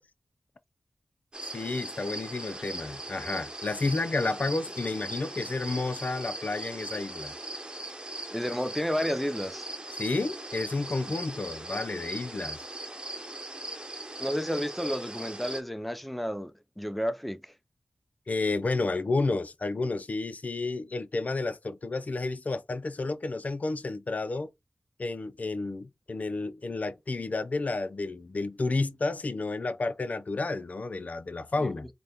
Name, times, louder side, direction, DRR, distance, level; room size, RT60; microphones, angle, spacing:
sound 1, 1.3-15.6, right 1 dB, 30° right, 1.0 m, -39 dB
voice 1, 1.5-7.3 10.0-12.6 18.3-24.5 25.0-31.9, left 3 dB, 55° left, 0.5 m, -31 dB
voice 2, 8.3-9.7 14.2-17.5 31.6-31.7, equal, ahead, 0.4 m, -31 dB
5.0 x 2.2 x 2.8 m
wide cardioid pair, 60°, 3 cm